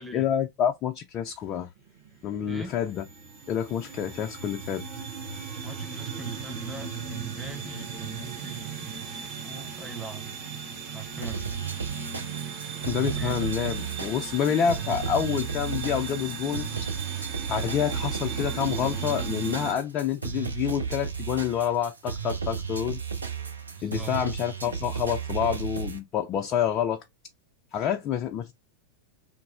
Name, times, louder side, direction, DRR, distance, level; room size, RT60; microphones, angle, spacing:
voice 1, 0.0-1.7 2.2-3.1 3.5-4.8 12.9-16.7 17.5-23.0 23.8-27.0 27.7-28.5, left 9 dB, 35° left, 0.3 m, -28 dB
sound 1, 1.8-19.7, right 6 dB, 45° right, 1.0 m, -37 dB
voice 2, 5.6-10.4 10.9-11.6 13.1-13.4 23.8-24.1, right 4 dB, 5° right, 0.7 m, -42 dB
sound 2, 11.2-26.0, right 6 dB, 80° right, 0.6 m, -33 dB
3.1 x 2.0 x 2.3 m
figure-of-eight pair, 90°, 0 cm